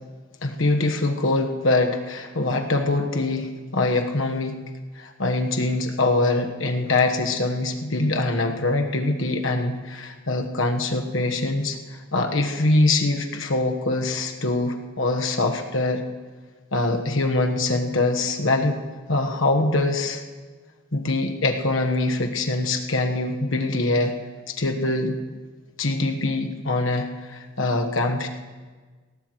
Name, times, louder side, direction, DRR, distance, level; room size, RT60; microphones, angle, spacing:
voice 1, 0.4-4.6 4.9-16.0 16.7-18.8 19.1-20.2 20.9-24.2 24.5-25.2 25.8-28.3, left 2 dB, 70° left, 4 dB, 1.3 m, -23 dB
19.0 x 17.5 x 3.2 m, 1.4 s
head